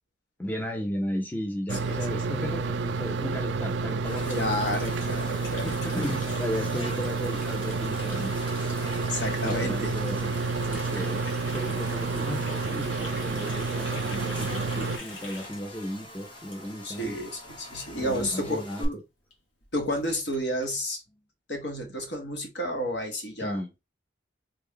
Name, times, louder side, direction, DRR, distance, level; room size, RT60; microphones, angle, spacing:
voice 1, 0.4-4.9 5.6-9.0 9.4-11.2 11.5-17.2 18.0-19.0 23.4-23.8, equal, 10° left, 0.4 m, -35 dB
sound 1, 1.7-15.0, right 4 dB, 75° right, 0.4 m, -30 dB
Buzz, 4.0-18.8, left 1 dB, 25° left, 0.8 m, -44 dB
Water tap faucet, 4.1-17.1 17.4-17.6 17.9-18.2 18.5-18.6 18.8-18.9 19.3-19.4 19.6-20.7, left 2 dB, 85° left, 1.4 m, -45 dB
voice 2, 4.3-5.7 9.1-9.9 16.8-19.0 19.7-21.0 21.5-23.6, equal, 65° left, 1.1 m, -31 dB
3.3 x 2.3 x 3.5 m
head